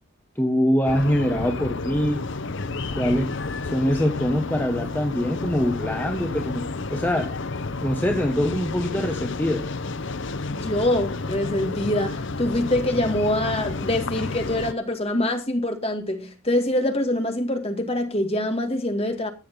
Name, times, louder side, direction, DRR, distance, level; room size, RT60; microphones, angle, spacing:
voice 1, 0.4-2.2 3.0-3.3 3.6-7.3 7.8-9.6, equal, 10° left, 1.4 m, -24 dB
sound 1, 0.9-14.7, left 3 dB, 55° left, 0.8 m, -31 dB
voice 2, 10.5-19.3, left 1 dB, 25° left, 2.1 m, -25 dB
13.5 x 8.4 x 5.4 m
head